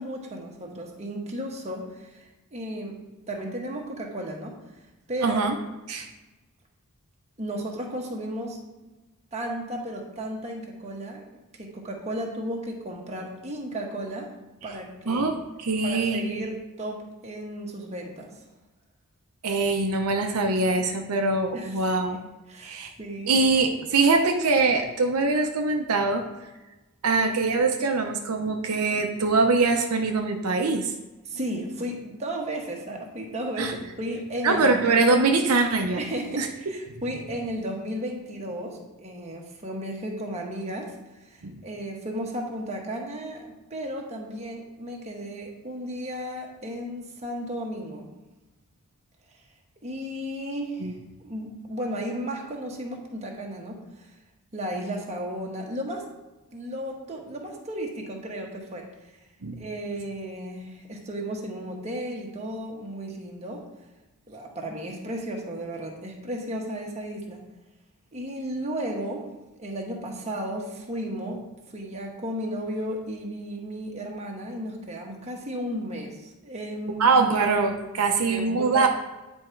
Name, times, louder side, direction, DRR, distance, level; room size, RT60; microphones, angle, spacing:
voice 1, 0.0-3.0 3.3-4.6 5.1-5.4 7.4-8.9 9.3-11.2 11.6-14.3 14.6-15.3 15.8-18.4 21.5-22.0 22.5-23.4 31.2-34.8 36.0-40.9 41.2-48.1 49.8-50.9 51.2-54.1 54.5-56.1 56.5-58.9 59.6-63.6 64.3-67.4 68.1-69.3 69.6-71.5 71.7-77.1 78.2-78.9, right 1 dB, 30° right, 0 dB, 1.2 m, -34 dB
voice 2, 5.2-5.6 5.9-6.1 15.1-15.3 15.6-16.5 19.4-22.2 22.6-22.9 23.3-26.2 27.0-30.9 33.6-33.7 34.4-36.0 36.4-36.5 41.4-41.5 50.8-50.9 59.4-59.6 77.0-78.9, right 3 dB, 75° right, 3 dB, 0.7 m, -23 dB
9.6 x 3.6 x 4.5 m, 1.1 s
head